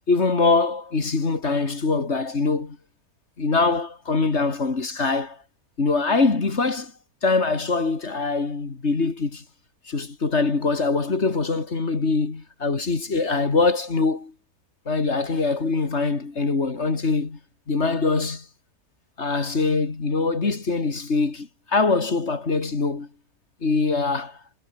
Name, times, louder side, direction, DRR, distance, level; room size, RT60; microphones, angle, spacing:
voice 1, 0.1-2.8 3.4-5.4 5.8-6.9 7.2-9.4 9.9-14.3 14.9-17.4 17.7-18.5 19.2-23.1 23.6-24.4, left 3 dB, 45° left, 2.6 m, -23 dB
omnidirectional pair, 1.6 m